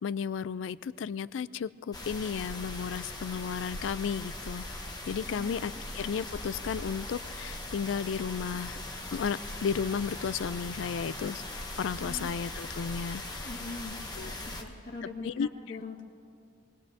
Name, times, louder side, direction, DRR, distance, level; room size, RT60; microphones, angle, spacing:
voice 1, 0.0-4.7 5.1-8.8 9.1-11.4 11.8-13.5 14.2-14.3 15.2-15.8, left 6 dB, 70° left, 18 dB, 0.3 m, -34 dB
sound 1, 1.9-14.6, left 1 dB, 20° left, 1.0 m, -40 dB
voice 2, 13.4-14.0 14.2-15.3 15.7-16.0, left 3 dB, 45° left, -1 dB, 1.9 m, -42 dB
26.5 x 19.5 x 2.8 m, 2.4 s
head